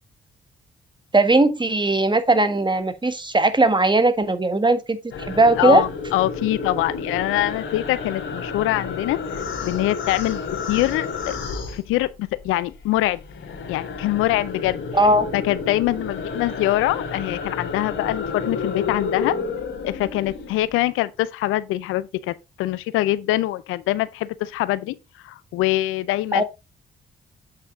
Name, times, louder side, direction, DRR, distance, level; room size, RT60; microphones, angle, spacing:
voice 1, 1.1-5.0 5.3-5.8 14.9-15.3 26.3-26.4, right 2 dB, 20° right, 1.5 m, -18 dB
sound 1, 5.1-12.4 12.7-20.7, left 4 dB, 70° left, 2.8 m, -31 dB
voice 2, 5.6-9.2 9.6-10.4 10.7-13.2 13.7-14.8 15.3-19.3 19.8-25.0 25.2-26.4, left 16 dB, 85° left, 0.5 m, -24 dB
8.2 x 5.7 x 3.9 m
supercardioid pair, 50°, 21 cm